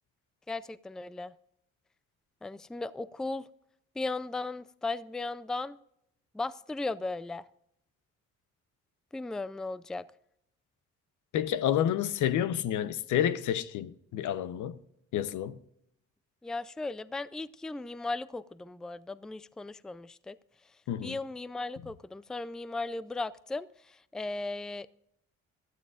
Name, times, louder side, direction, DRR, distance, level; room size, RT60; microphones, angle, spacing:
voice 1, 0.5-1.3 2.4-3.4 4.0-5.8 6.3-7.5 9.1-10.0 16.4-20.4 21.0-24.9, left 3 dB, ahead, 0.4 m, -36 dB
voice 2, 11.3-14.8 15.1-15.6 20.9-21.2, left 10 dB, 80° left, 0.8 m, -29 dB
17.5 x 12.5 x 2.4 m
cardioid pair, 90°, 30 cm